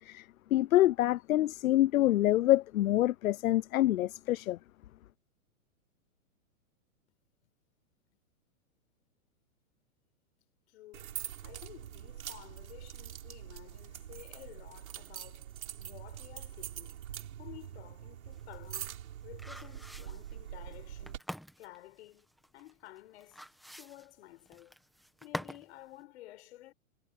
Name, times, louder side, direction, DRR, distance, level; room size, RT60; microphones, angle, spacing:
voice 1, 0.0-4.6, left 14 dB, 70° left, 0.6 m, -26 dB
voice 2, 10.7-11.1 11.4-17.0 17.4-21.2 21.6-22.3 22.5-23.4 23.8-24.8 25.2-26.7, left 16 dB, 50° left, 6.7 m, -53 dB
sound 1, 10.9-21.2, right 11 dB, 70° right, 4.6 m, -44 dB
sound 2, 18.3-25.7 26.0-26.1, equal, ahead, 1.5 m, -46 dB
hypercardioid pair, 155°, 43 cm